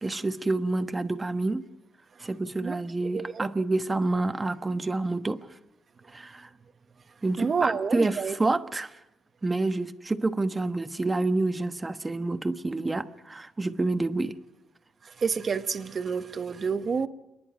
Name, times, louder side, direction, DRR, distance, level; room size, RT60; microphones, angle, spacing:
voice 1, 0.0-1.6 2.2-5.4 6.1-6.5 7.2-8.9 9.4-14.4, right 2 dB, 20° right, 1.2 m, -28 dB
voice 2, 2.6-3.5 7.4-8.3 15.0-17.1, right 5 dB, 45° right, 1.1 m, -29 dB
28.5 x 11.0 x 9.2 m
cardioid pair, 90°, 0 cm